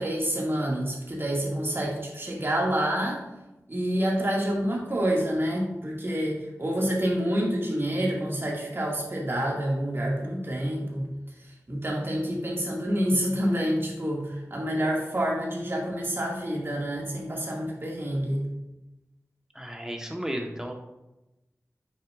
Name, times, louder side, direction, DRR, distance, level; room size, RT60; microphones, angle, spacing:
voice 1, 0.0-3.2 3.7-11.1 11.7-18.5, equal, 40° right, -3 dB, 2.2 m, -28 dB
voice 2, 19.5-20.7, equal, 10° right, 2 dB, 1.3 m, -33 dB
8.5 x 6.5 x 2.5 m, 0.98 s
wide cardioid pair, 55°, 6 cm